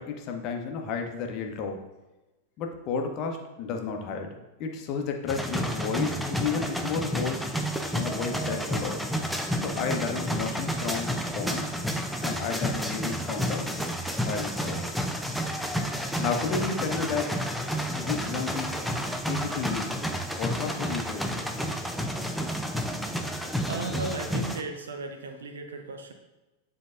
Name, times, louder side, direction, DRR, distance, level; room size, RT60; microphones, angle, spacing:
voice 1, 0.0-1.8 2.6-7.5 7.9-9.0 9.6-11.7 12.2-13.7 14.2-14.9 16.2-17.3 17.9-18.7 19.3-20.0 20.4-21.2, left 5 dB, 40° left, 3 dB, 0.9 m, -32 dB
sound 1, 5.3-24.6, equal, ahead, 0.5 m, -30 dB
voice 2, 23.7-26.1, right 2 dB, 65° right, 6 dB, 0.7 m, -36 dB
9.4 x 3.9 x 2.6 m, 1.1 s
figure-of-eight pair, 90°, 0 cm